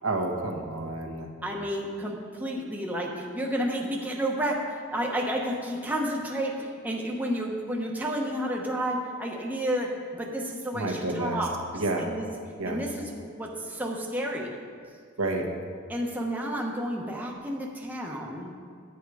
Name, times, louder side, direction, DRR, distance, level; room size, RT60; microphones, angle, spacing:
voice 1, 0.0-1.3 10.7-11.4 11.7-12.1 12.6-12.8 15.2-15.5, right 2 dB, 85° right, 2 dB, 1.3 m, -29 dB
voice 2, 1.4-12.2 12.6-14.5 15.9-18.5, equal, 10° right, -1 dB, 1.0 m, -31 dB
10.5 x 8.3 x 4.8 m, 2.2 s
head